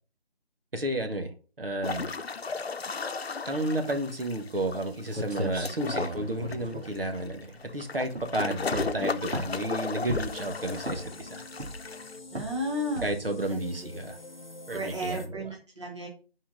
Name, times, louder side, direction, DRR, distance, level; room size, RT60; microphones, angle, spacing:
voice 1, 0.7-1.3 1.6-2.1 3.4-11.4 13.0-14.2 14.7-15.5, right 1 dB, 65° right, 1.7 m, -32 dB
sound 1, 1.8-12.2, left 4 dB, 70° left, 0.8 m, -36 dB
sound 2, 5.1-7.7 8.1-8.4 8.7-9.7 10.1-10.5 10.8-11.2 11.6-12.0 12.4-12.6 13.0-13.3, equal, 85° right, 2.1 m, -35 dB
sound 3, 10.2-15.3, left 3 dB, 45° left, 1.3 m, -46 dB
voice 2, 12.3-13.1 14.7-16.1, equal, 30° right, 1.3 m, -33 dB
8.7 x 4.6 x 3.8 m
figure-of-eight pair, 180°, 31 cm